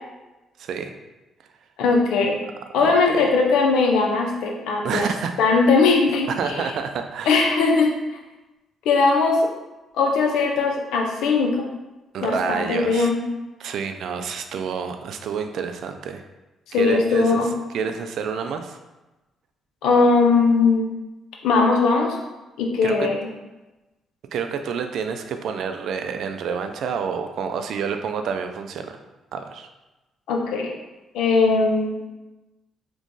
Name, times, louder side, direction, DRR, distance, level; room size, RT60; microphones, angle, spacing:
voice 1, 0.6-0.9 2.8-3.2 4.8-5.4 6.3-7.4 12.1-13.1 13.6-16.2 16.8-18.8 22.8-23.1 24.3-29.0 29.3-29.7, right 6 dB, 75° right, 7 dB, 0.3 m, -28 dB
voice 2, 1.8-2.4 2.7-5.1 5.4-6.7 7.3-7.9 8.9-9.5 10.0-11.7 12.2-13.2 16.7-17.5 19.8-20.9 21.4-22.2 22.6-23.2 30.3-30.7 31.1-32.0, left 4 dB, 90° left, 1 dB, 0.5 m, -19 dB
2.9 x 2.6 x 3.6 m, 1.1 s
cardioid pair, 90°, 0 cm